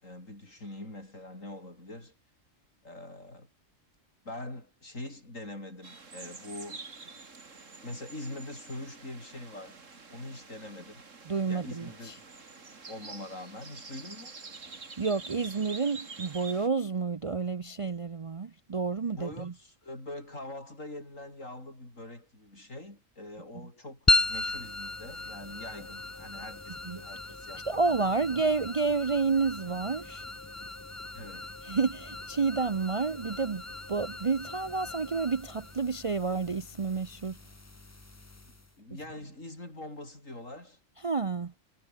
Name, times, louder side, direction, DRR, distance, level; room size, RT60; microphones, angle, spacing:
voice 1, 0.0-2.1 2.8-3.5 4.2-6.8 7.8-9.8 10.1-11.1 11.5-12.2 12.9-14.4 19.1-27.8 28.2-28.3 31.1-31.5 38.8-40.8, left 1 dB, 80° left, 8.0 m, -43 dB
sound 1, 5.8-16.7, right 4 dB, 75° right, 2.9 m, -47 dB
voice 2, 11.3-12.1 15.0-19.5 26.9-27.0 27.7-30.2 31.6-33.6 33.9-37.4 41.0-41.5, right 4 dB, 35° right, 0.5 m, -30 dB
sound 2, 24.1-38.7, left 2 dB, 15° left, 0.8 m, -36 dB
omnidirectional pair, 1.3 m